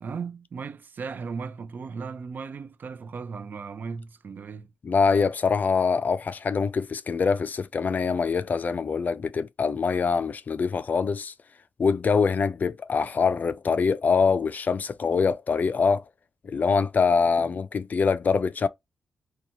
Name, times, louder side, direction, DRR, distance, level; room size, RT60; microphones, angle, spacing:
voice 1, 0.0-4.7 17.4-17.5, right 5 dB, 55° right, 0.4 m, -36 dB
voice 2, 4.8-11.3 11.8-16.0 16.4-18.7, left 5 dB, 45° left, 0.3 m, -24 dB
2.7 x 2.3 x 2.8 m
cardioid pair, 60°, 4 cm